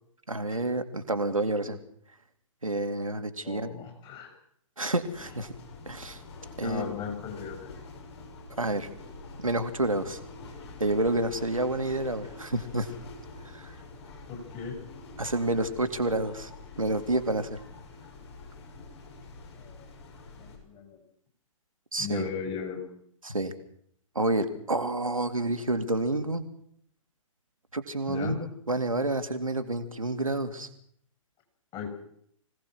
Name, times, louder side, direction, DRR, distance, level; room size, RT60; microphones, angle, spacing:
voice 1, 0.3-1.8 2.6-3.8 4.8-5.5 5.9-6.2 6.6-6.9 8.6-8.9 9.4-10.2 10.8-12.9 13.4-13.7 15.2-16.5 16.8-17.6 21.9-22.3 23.2-23.5 24.1-26.4 27.7-30.7, right 2 dB, 85° right, 7 dB, 2.4 m, -29 dB
voice 2, 3.4-4.3 6.6-7.7 14.3-14.8 19.5-19.9 20.3-21.0 22.0-22.8 28.1-28.4 31.7-31.9, left 6 dB, 30° left, 4 dB, 6.6 m, -37 dB
sound 1, 5.1-20.6, left 3 dB, 55° left, 6.8 m, -46 dB
25.0 x 18.0 x 6.2 m, 0.68 s
figure-of-eight pair, 115°, 17 cm